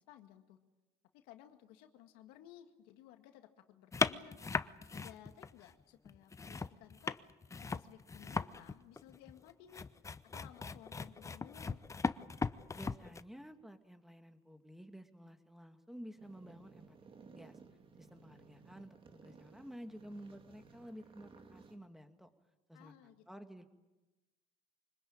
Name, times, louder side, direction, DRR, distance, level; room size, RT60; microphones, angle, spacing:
voice 1, 0.1-0.6 1.1-4.4 4.9-7.3 7.7-9.8 10.2-11.8 22.7-23.5, left 12 dB, 80° left, 6 dB, 2.0 m, -58 dB
sound 1, 3.9-5.7 6.1-13.2, left 4 dB, 20° left, 0.8 m, -38 dB
voice 2, 12.7-17.0 17.2-17.6 18.0-22.3 22.7-23.6, equal, ahead, 7 dB, 2.2 m, -52 dB
sound 2, 16.2-21.8, right 4 dB, 35° right, 2.6 m, -58 dB
25.5 x 20.0 x 8.8 m, 1.1 s
cardioid pair, 100°, 15 cm